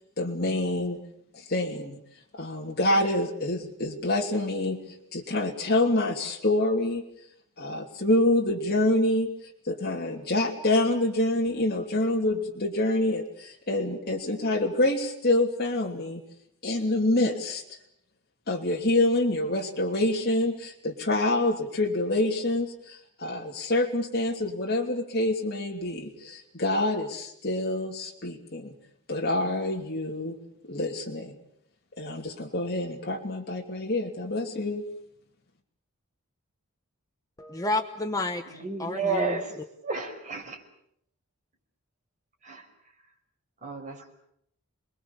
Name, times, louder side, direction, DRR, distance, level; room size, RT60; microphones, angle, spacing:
voice 1, 0.2-1.0 1.3-2.0 2.3-4.8 5.1-7.0 7.6-9.3 9.6-16.2 16.6-17.6 18.5-28.7 29.1-30.4 30.7-31.3 32.0-34.8, left 1 dB, 45° left, 3.0 m, -26 dB
voice 2, 37.4-39.6, left 2 dB, 15° left, 1.2 m, -31 dB
voice 3, 38.5-39.5 39.8-40.6 42.4-42.6 43.6-44.1, right 3 dB, 35° right, 5.7 m, -31 dB
30.0 x 21.0 x 7.2 m
head